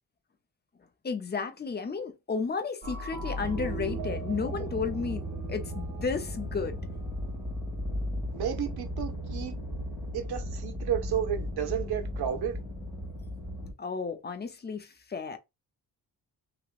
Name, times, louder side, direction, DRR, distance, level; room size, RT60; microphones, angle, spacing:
voice 1, 1.0-6.8 13.8-15.4, left 5 dB, 25° left, 0.6 m, -33 dB
sound 1, 2.8-6.4, right 1 dB, 25° right, 0.7 m, -40 dB
sound 2, 3.4-13.7, equal, 10° right, 2.0 m, -36 dB
voice 2, 8.3-9.5 10.1-12.6, right 9 dB, 85° right, 0.8 m, -32 dB
3.0 x 2.9 x 2.4 m
wide cardioid pair, 130°, 38 cm